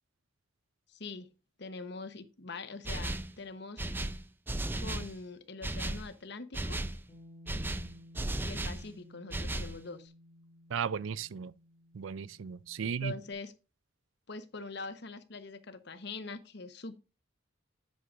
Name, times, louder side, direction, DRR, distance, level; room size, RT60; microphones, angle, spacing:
voice 1, 0.9-1.3 1.6-3.8 4.8-6.8 8.3-10.1 12.8-13.5 14.3-17.0, left 3 dB, 60° left, 1.0 m, -43 dB
sound 1, 2.8-3.3 3.8-5.1 5.6-6.1 6.5-7.0 7.5-8.8 9.3-9.8, right 1 dB, 10° right, 0.4 m, -35 dB
Bass guitar, 7.1-13.3, left 1 dB, 25° left, 1.9 m, -56 dB
voice 2, 10.7-11.5 11.9-13.1, right 7 dB, 80° right, 0.4 m, -35 dB
10.0 x 7.7 x 2.5 m
head